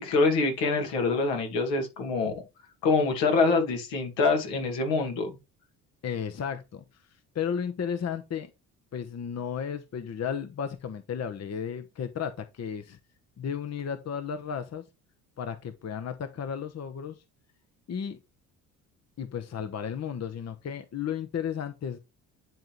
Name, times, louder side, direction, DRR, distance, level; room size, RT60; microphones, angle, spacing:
voice 1, 0.0-2.3 2.8-5.3, left 3 dB, 75° left, 2.2 m, -25 dB
voice 2, 6.0-6.8 7.3-8.5 8.9-13.0 13.4-14.8 15.4-17.2 17.9-18.2 19.2-22.0, left 7 dB, 35° left, 0.9 m, -33 dB
10.5 x 3.8 x 3.1 m
hypercardioid pair, 55°, 44 cm